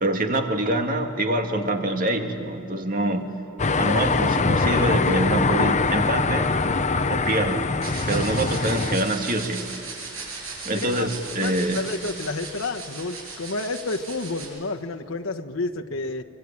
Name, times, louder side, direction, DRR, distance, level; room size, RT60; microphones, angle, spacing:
voice 1, 0.0-3.3 3.8-6.5 7.1-7.7 8.1-9.7 10.7-11.8, right 1 dB, 45° right, 4 dB, 1.9 m, -25 dB
sound 1, 3.6-9.0, left 3 dB, 35° left, 0.8 m, -23 dB
sound 2, 7.8-14.4, right 4 dB, 75° right, 7.3 m, -37 dB
voice 2, 10.7-11.1 11.3-16.2, left 3 dB, 70° left, 3 dB, 1.2 m, -30 dB
25.0 x 23.5 x 8.7 m, 2.6 s
head